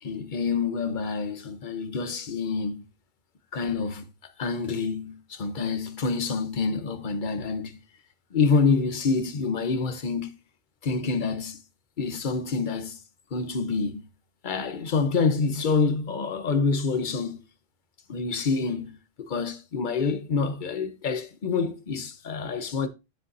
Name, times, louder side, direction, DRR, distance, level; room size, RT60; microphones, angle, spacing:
voice 1, 0.0-2.8 3.5-4.1 4.4-7.8 8.3-10.3 10.8-11.6 12.0-13.0 13.3-14.0 14.4-17.4 18.1-19.0 19.3-22.9, left 4 dB, 50° left, 1.0 m, -27 dB
10.0 x 6.9 x 2.6 m
omnidirectional pair, 1.1 m